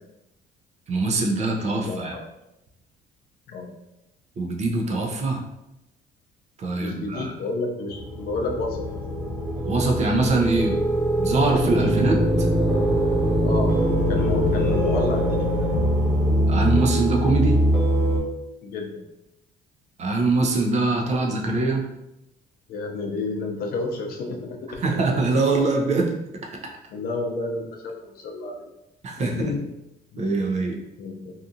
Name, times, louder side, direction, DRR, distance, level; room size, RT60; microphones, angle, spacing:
voice 1, 0.9-2.2 4.4-5.4 6.6-7.3 9.6-10.8 11.2-12.5 16.5-17.6 20.0-21.8 24.8-26.5 29.0-29.5 30.2-30.8, right 3 dB, 40° right, 1 dB, 0.5 m, -23 dB
voice 2, 1.8-2.2 3.5-3.7 6.8-8.9 13.4-13.8 14.1-15.7 18.6-19.0 22.7-24.7 26.9-28.7 29.2-29.7 30.1-30.3 31.0-31.3, left 3 dB, 65° left, 2 dB, 0.6 m, -30 dB
sound 1, 7.9-18.2, equal, 5° left, 1.1 m, -22 dB
2.8 x 2.4 x 2.5 m, 0.91 s
cardioid pair, 110°, 17 cm